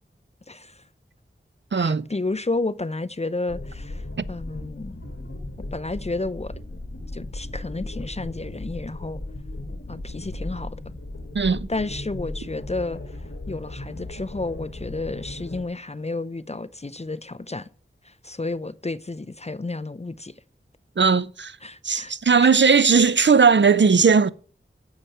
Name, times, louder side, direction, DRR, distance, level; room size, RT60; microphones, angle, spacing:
voice 1, 0.5-0.8 1.7-5.0 5.7-6.5 7.1-9.2 9.9-10.8 11.7-13.2 13.5-17.7 18.0-20.3 21.6-22.1 22.4-22.6, left 2 dB, 30° left, 0.6 m, -31 dB
voice 2, 1.7-2.0 4.2-4.3 11.3-11.7 21.0-21.6 21.8-24.3, right 5 dB, 60° right, 0.6 m, -18 dB
sound 1, 3.5-15.6, left 2 dB, 65° left, 2.4 m, -36 dB
8.8 x 7.0 x 8.3 m
wide cardioid pair, 55°, 21 cm